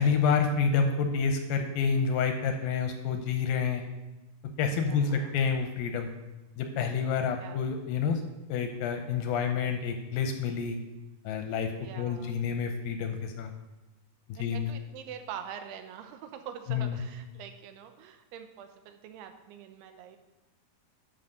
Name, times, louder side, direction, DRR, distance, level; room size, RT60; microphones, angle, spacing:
voice 1, 0.0-3.8 4.6-6.1 6.6-8.2 8.5-10.8 11.3-11.7 12.0-13.5 14.3-14.7 16.7-17.0, left 6 dB, 80° left, 6 dB, 2.2 m, -28 dB
voice 2, 4.7-5.3 7.4-7.7 11.8-12.4 14.3-20.2, right 8 dB, 90° right, 7 dB, 2.8 m, -45 dB
11.0 x 4.1 x 6.6 m, 1.1 s
omnidirectional pair, 4.6 m